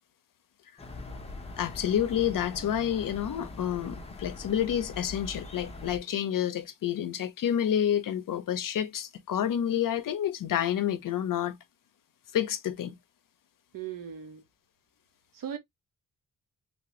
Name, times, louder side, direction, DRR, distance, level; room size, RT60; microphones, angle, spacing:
sound 1, 0.8-6.0, left 2 dB, 20° left, 0.6 m, -42 dB
voice 1, 1.6-11.6 12.3-12.9, left 10 dB, 75° left, 0.6 m, -29 dB
voice 2, 13.7-14.4 15.3-15.6, right 9 dB, 75° right, 0.8 m, -38 dB
3.1 x 2.6 x 3.0 m
wide cardioid pair, 175°, 34 cm